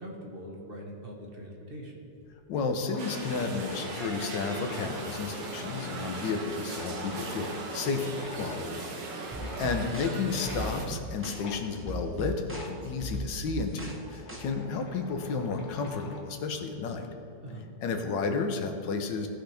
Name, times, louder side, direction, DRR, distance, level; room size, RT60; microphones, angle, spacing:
voice 1, 0.0-2.0 9.4-9.6 17.4-17.6, equal, 35° right, -1 dB, 1.2 m, -42 dB
sound 1, 2.2-2.3 2.5-2.6 2.8-7.7 8.1-8.7 9.3-9.9 10.4-10.7 11.4-11.6 12.4-12.8 13.5-16.3, left 2 dB, 60° left, 1.6 m, -46 dB
voice 2, 2.5-9.0 9.6-17.1 17.8-19.3, left 4 dB, 85° left, 5 dB, 1.6 m, -32 dB
sound 2, 3.0-10.9, right 3 dB, 85° right, 1.7 m, -38 dB
sound 3, 9.3-14.4, right 1 dB, 15° right, 0.5 m, -38 dB
17.5 x 5.9 x 3.4 m, 2.8 s
omnidirectional pair, 1.9 m